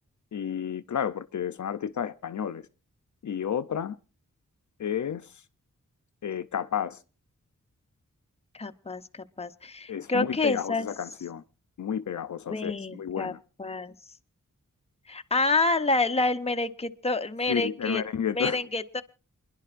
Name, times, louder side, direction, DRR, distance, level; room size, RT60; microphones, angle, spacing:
voice 1, 0.3-2.7 3.2-4.0 4.8-5.4 6.2-7.0 9.9-11.4 11.8-13.4 17.5-18.6, left 8 dB, 65° left, 0.5 m, -31 dB
voice 2, 8.5-10.9 12.5-13.3 13.6-13.9 15.1-18.0 18.3-19.0, left 3 dB, 20° left, 0.7 m, -28 dB
28.0 x 10.5 x 2.5 m
wide cardioid pair, 75°, 31 cm